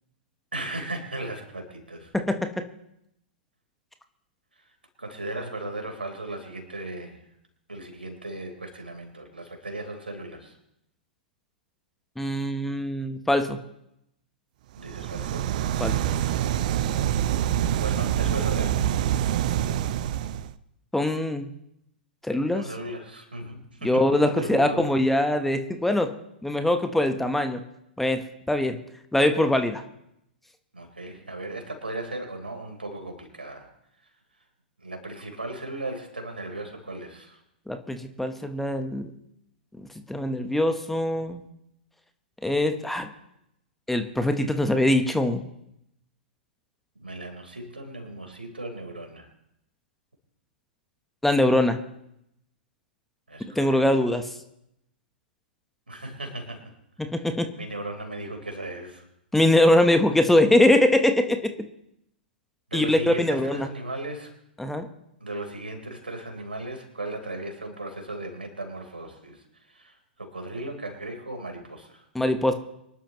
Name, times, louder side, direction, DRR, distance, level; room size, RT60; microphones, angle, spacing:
voice 1, 0.5-2.1 4.6-4.7 5.0-7.2 7.7-10.6 14.7-15.5 17.8-18.8 22.5-25.0 30.7-33.7 34.8-37.4 47.0-49.3 53.3-54.1 55.9-56.7 57.0-59.1 62.7-64.3 65.2-72.0, right 1 dB, 80° right, 3 dB, 4.0 m, -36 dB
voice 2, 2.1-2.6 12.2-13.6 15.8-16.0 20.9-21.5 22.2-22.6 23.8-26.1 26.4-27.6 28.0-28.2 28.5-28.8 29.1-29.8 37.7-39.1 40.1-41.4 42.4-43.1 43.9-45.5 51.2-51.8 53.5-54.2 57.0-57.5 59.3-61.5 62.7-63.7 64.6-64.9 72.1-72.5, left 1 dB, 5° left, 7 dB, 1.1 m, -22 dB
sound 1, 14.8-20.5, right 11 dB, 50° right, 0.7 m, -26 dB
25.0 x 11.5 x 3.1 m, 0.80 s
figure-of-eight pair, 105°, 5 cm